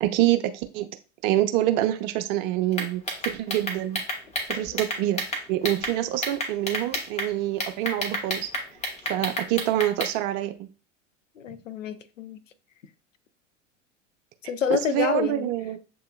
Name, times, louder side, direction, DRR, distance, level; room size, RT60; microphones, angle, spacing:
voice 1, 0.0-0.9 1.2-4.0 4.5-8.5 9.1-10.7 14.7-15.8, right 13 dB, 45° right, 0.7 m, -26 dB
sound 1, 2.7-5.9 6.2-7.3 7.6-10.1, equal, 15° left, 1.5 m, -30 dB
voice 2, 11.4-12.4 14.4-15.5, left 7 dB, 80° left, 0.6 m, -28 dB
7.5 x 2.8 x 2.3 m
figure-of-eight pair, 85°, 38 cm